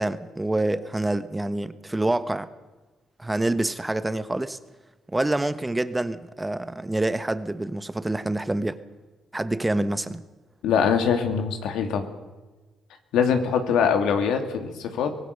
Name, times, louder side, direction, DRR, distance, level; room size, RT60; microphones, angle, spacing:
voice 1, 0.0-2.5 3.2-4.6 5.1-8.8 9.3-10.2, right 2 dB, 15° right, 12 dB, 1.1 m, -26 dB
voice 2, 10.6-12.1 13.1-15.2, left 6 dB, 85° left, 6 dB, 2.6 m, -23 dB
24.5 x 18.5 x 6.8 m, 1.2 s
cardioid pair, 90°, 0 cm